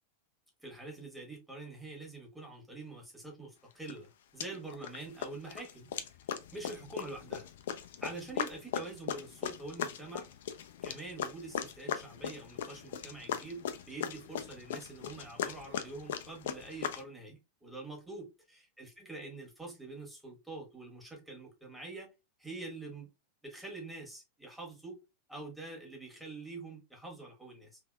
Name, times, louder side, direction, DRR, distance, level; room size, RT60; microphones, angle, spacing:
voice 1, 0.6-5.9 6.5-7.5 8.0-10.3 10.8-18.3 18.8-22.1 22.4-23.1 23.4-25.0 25.3-27.8, right 3 dB, 5° right, 1.4 m, -45 dB
sound 1, 3.9-4.0 4.4-5.0 5.2-17.0, left 9 dB, 55° left, 0.4 m, -39 dB
3.5 x 2.8 x 2.2 m
figure-of-eight pair, 90°, 0 cm